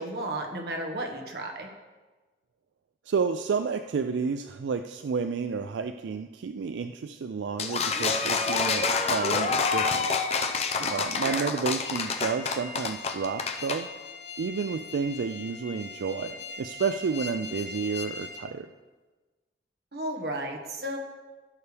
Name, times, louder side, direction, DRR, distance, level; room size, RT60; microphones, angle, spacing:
voice 1, 0.0-1.7 11.2-11.5 19.9-21.0, right 1 dB, 60° right, 2 dB, 1.5 m, -33 dB
voice 2, 3.1-10.1 10.8-13.9 14.4-18.7, right 5 dB, 90° right, 8 dB, 0.4 m, -31 dB
sound 1, 7.6-13.8, left 4 dB, 35° left, 0.6 m, -27 dB
sound 2, 11.8-18.4, left 3 dB, 70° left, 0.9 m, -41 dB
15.5 x 6.8 x 3.4 m, 1.3 s
head